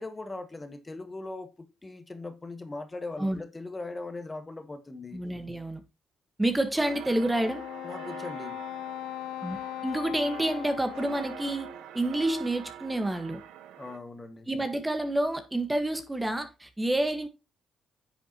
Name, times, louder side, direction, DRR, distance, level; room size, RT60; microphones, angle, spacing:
voice 1, 0.0-5.2 7.8-8.6 13.8-14.5, left 2 dB, 20° left, 1.6 m, -40 dB
voice 2, 5.1-5.8 6.4-7.6 9.4-11.7 11.9-13.4 14.5-17.3, right 1 dB, 10° right, 1.4 m, -28 dB
sound 1, 6.8-14.0, right 10 dB, 90° right, 0.9 m, -45 dB
Wind instrument woodwind instrument, 7.3-11.9, left 14 dB, 90° left, 0.5 m, -39 dB
10.0 x 6.9 x 2.9 m
cardioid pair, 90°, 0 cm